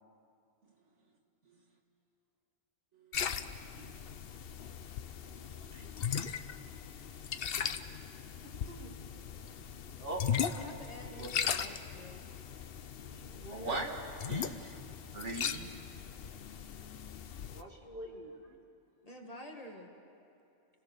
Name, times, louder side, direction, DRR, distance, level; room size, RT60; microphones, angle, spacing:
voice 1, 2.9-3.5 3.9-4.0 5.3-5.9 6.3-6.4 9.6-9.7 13.0-13.9 14.3-16.0, right 3 dB, 70° right, 2 dB, 2.0 m, -43 dB
sound 1, 3.1-17.6, left 8 dB, 55° left, 0.8 m, -39 dB
voice 2, 8.4-9.4 10.0-10.2 11.1-11.3 13.2-13.8 17.5-18.6, right 1 dB, 45° right, 0 dB, 2.4 m, -45 dB
voice 3, 10.5-12.2 13.0-13.6 14.8-15.0 15.3-15.5 16.1-16.5 16.8-17.0 17.3-17.8 18.5-18.6 19.0-19.9, left 1 dB, 30° left, 0 dB, 2.0 m, -51 dB
30.0 x 16.5 x 6.5 m, 2.7 s
omnidirectional pair, 1.3 m